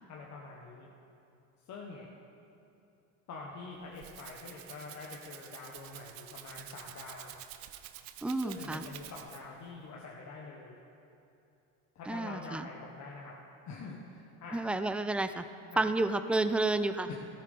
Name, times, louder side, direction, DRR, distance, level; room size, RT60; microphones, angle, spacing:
voice 1, 0.1-0.9 1.7-2.1 3.3-7.3 8.4-10.8 11.9-13.3 13.7-14.6 15.7-15.9 17.1-17.2, left 3 dB, 45° left, -3 dB, 1.4 m, -45 dB
Rattle (instrument), 3.7-9.6, right 13 dB, 85° right, 0.8 m, -49 dB
voice 2, 8.2-8.9 12.1-12.7 14.5-15.4 15.8-17.1, right 2 dB, 5° right, 11 dB, 0.3 m, -30 dB
14.0 x 13.5 x 3.7 m, 2.7 s
supercardioid pair, 100°, 38 cm